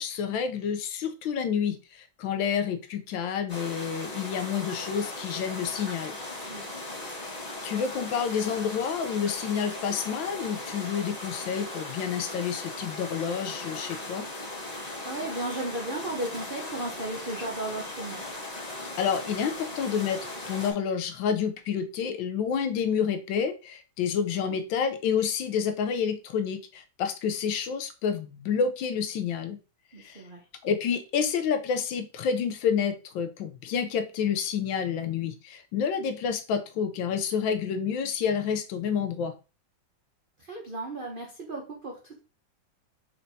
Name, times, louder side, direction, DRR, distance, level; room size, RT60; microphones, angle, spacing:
voice 1, 0.0-6.2 7.6-14.3 19.0-20.2 20.5-29.6 30.0-30.2 30.6-39.3, left 7 dB, 75° left, 8 dB, 1.3 m, -29 dB
sound 1, 3.5-20.7, left 2 dB, 25° left, 1.2 m, -38 dB
voice 2, 6.5-6.8 15.0-18.2 24.1-24.5 29.9-30.4 40.4-42.2, right 2 dB, 60° right, -1 dB, 0.5 m, -35 dB
4.4 x 4.3 x 2.6 m, 0.31 s
omnidirectional pair, 2.2 m